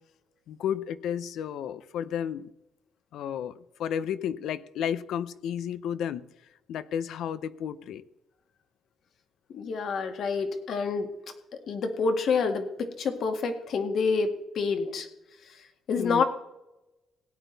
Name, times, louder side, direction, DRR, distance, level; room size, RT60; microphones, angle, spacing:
voice 1, 0.5-2.5 3.1-6.2 6.7-8.0 16.0-16.2, left 9 dB, 80° left, 0.6 m, -32 dB
voice 2, 9.5-11.1 11.7-14.3 14.6-15.1 15.9-16.2, left 4 dB, 65° left, 1.9 m, -27 dB
17.0 x 9.4 x 4.0 m
cardioid pair, 90°, 0 cm